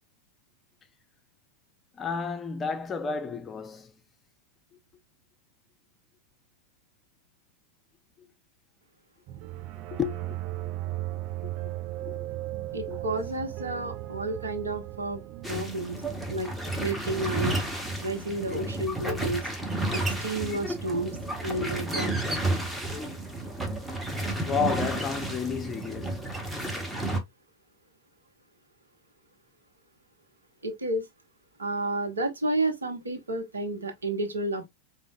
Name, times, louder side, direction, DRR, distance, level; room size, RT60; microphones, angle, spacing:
voice 1, 1.9-4.0 8.2-8.3 9.9-10.4 11.4-11.7 12.0-12.3 12.9-13.0 24.4-26.3, left 6 dB, 20° left, 0.6 m, -32 dB
sound 1, 9.3-15.6, right 15 dB, 40° right, 0.4 m, -36 dB
voice 2, 12.7-15.2 15.5-16.0 16.3-16.5 16.8-17.5 18.0-19.4 19.9-22.1 30.6-31.0 31.6-34.7, right 2 dB, 75° right, 0.9 m, -31 dB
sound 2, 15.4-27.2, right 1 dB, 5° right, 1.0 m, -31 dB
5.1 x 2.7 x 2.3 m
figure-of-eight pair, 90°, 0 cm